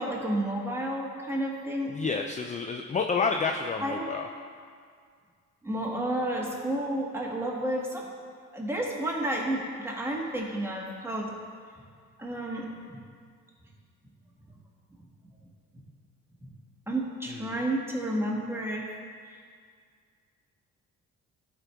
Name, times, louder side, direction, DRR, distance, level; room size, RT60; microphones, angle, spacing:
voice 1, 0.0-2.0 3.8-4.1 5.6-8.1 8.5-11.3 12.2-13.0 15.7-15.8 16.9-18.9 19.3-19.4, right 1 dB, 10° right, -2 dB, 1.4 m, -31 dB
voice 2, 1.9-4.3 17.5-17.6, left 5 dB, 25° left, 4 dB, 0.4 m, -29 dB
11.5 x 4.5 x 3.5 m, 2.1 s
cardioid pair, 90°, 30 cm